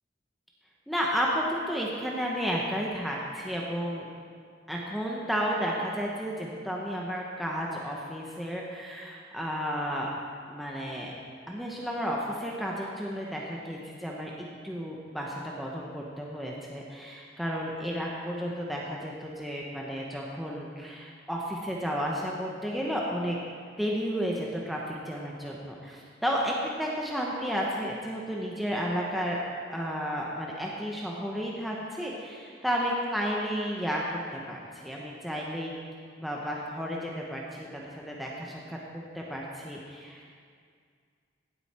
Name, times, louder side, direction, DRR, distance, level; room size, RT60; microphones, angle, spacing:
voice 1, 0.9-4.1 4.7-10.1 10.5-11.1 11.5-14.3 14.6-23.4 23.8-29.4 29.7-35.8 36.2-40.2, equal, ahead, -3 dB, 1.0 m, -32 dB
16.5 x 8.0 x 4.4 m, 2.1 s
head